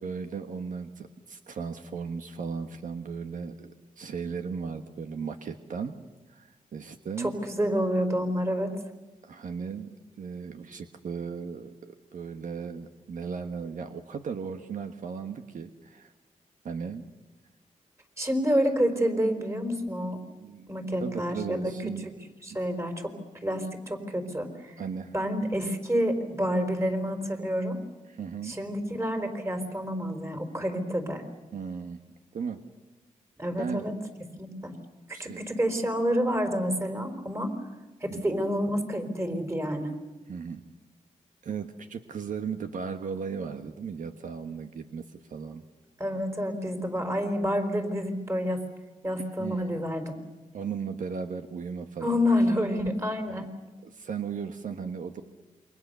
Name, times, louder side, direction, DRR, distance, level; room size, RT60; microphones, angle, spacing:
voice 1, 0.0-5.9 6.3-7.3 9.2-9.9 10.2-16.1 16.6-17.0 20.4-20.7 21.0-22.1 22.5-22.6 24.8-25.1 28.1-28.6 31.5-32.0 32.3-32.6 33.6-33.9 35.1-35.5 38.1-38.4 40.3-40.6 41.4-45.6 49.4-49.7 50.5-52.2 53.3-53.5 53.8-55.2, right 6 dB, 75° right, 7 dB, 1.3 m, -36 dB
voice 2, 7.2-8.7 18.2-20.2 20.7-21.7 22.0-22.2 22.4-23.1 23.4-24.8 25.1-27.8 28.4-31.2 33.4-33.9 34.4-34.7 35.1-37.5 38.0-39.9 46.0-48.6 49.0-50.2 52.0-53.5, equal, 20° right, 6 dB, 4.6 m, -28 dB
28.5 x 23.5 x 6.9 m, 1.2 s
cardioid pair, 85°, 14 cm